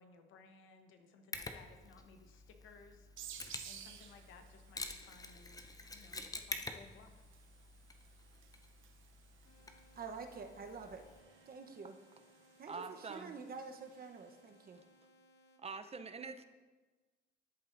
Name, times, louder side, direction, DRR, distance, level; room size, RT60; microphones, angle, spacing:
voice 1, 0.0-3.4 3.6-7.1, left 4 dB, 85° left, 6 dB, 0.9 m, -60 dB
Mechanisms, 1.3-11.2, left 3 dB, 20° left, 0.6 m, -49 dB
sound 1, 3.2-14.5, right 9 dB, 80° right, 0.7 m, -58 dB
sound 2, 9.4-15.6, left 1 dB, 60° left, 1.1 m, -67 dB
voice 2, 10.0-11.0 11.5-12.0 12.6-14.8, right 5 dB, 50° right, 5 dB, 0.9 m, -48 dB
voice 3, 12.7-13.4 15.6-16.4, right 4 dB, 30° right, 10 dB, 0.6 m, -45 dB
13.0 x 7.5 x 2.6 m, 1.3 s
cardioid pair, 90°, 20 cm